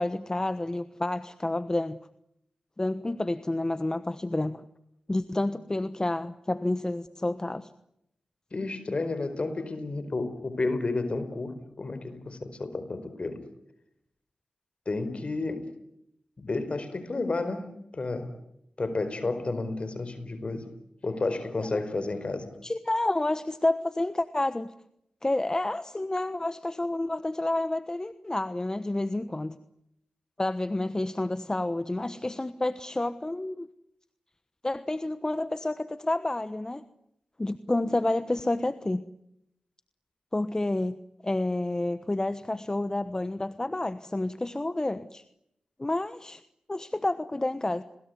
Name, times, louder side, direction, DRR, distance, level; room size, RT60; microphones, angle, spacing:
voice 1, 0.0-2.0 2.8-4.6 5.1-7.7 21.7-21.9 22.6-24.7 25.2-29.6 30.4-33.7 34.6-36.8 37.4-39.0 40.3-41.0 41.2-45.2 45.8-46.4 46.7-47.8, left 2 dB, 25° left, 1.2 m, -29 dB
voice 2, 8.5-13.4 14.8-15.7 16.4-18.3 18.8-20.7 21.0-22.5, left 3 dB, 50° left, 4.9 m, -31 dB
29.5 x 20.5 x 9.6 m
cardioid pair, 40°, 2 cm